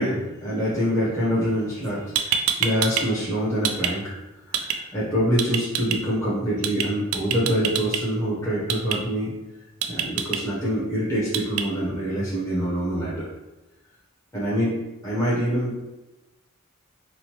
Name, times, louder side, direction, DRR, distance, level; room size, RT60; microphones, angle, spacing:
voice 1, 0.0-4.0 4.5-9.3 9.9-13.3 14.3-14.8 15.0-15.8, equal, 15° left, -9 dB, 0.6 m, -25 dB
sound 1, 1.8-1.9 2.2-3.0 3.3-3.9 4.5-4.8 5.4-6.0 6.6-6.9 7.1-8.0 8.7-9.0 9.8-10.4 11.3-11.6, right 9 dB, 80° right, 0.3 m, -24 dB
3.0 x 2.1 x 2.8 m, 1.0 s
head